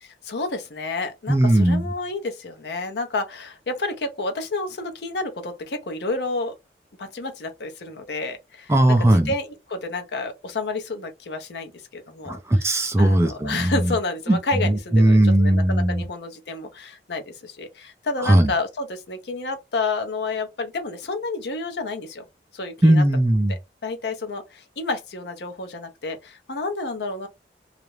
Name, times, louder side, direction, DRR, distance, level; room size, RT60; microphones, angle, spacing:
voice 1, 0.0-6.5 7.0-8.7 9.3-22.2 22.5-23.0 23.5-27.3, left 3 dB, 70° left, 0.6 m, -30 dB
voice 2, 1.3-1.8 8.7-9.3 12.3-13.9 14.3-14.4 14.6-16.0 18.2-18.5 22.8-23.5, right 1 dB, 15° right, 0.4 m, -18 dB
2.4 x 2.0 x 3.0 m
head